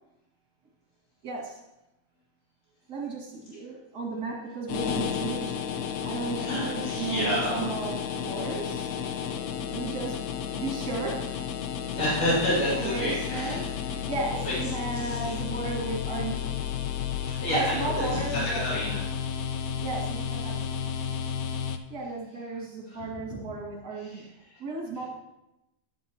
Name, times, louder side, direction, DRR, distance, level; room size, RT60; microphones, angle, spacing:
voice 1, 1.2-1.6 2.9-5.6 6.0-8.9 9.7-10.2 10.5-11.3 12.7-16.6 17.5-18.8 19.8-20.8 21.9-24.3 24.6-25.1, right 3 dB, 70° right, -5 dB, 2.5 m, -34 dB
sound 1, 4.7-21.8, left 8 dB, 70° left, 1.1 m, -32 dB
voice 2, 6.3-7.7 11.9-13.7 14.4-14.5 15.0-15.3 17.2-19.0 22.9-23.0 23.3-23.4 24.0-24.2, equal, 40° left, -8 dB, 2.8 m, -29 dB
11.0 x 7.8 x 2.9 m, 0.93 s
omnidirectional pair, 1.8 m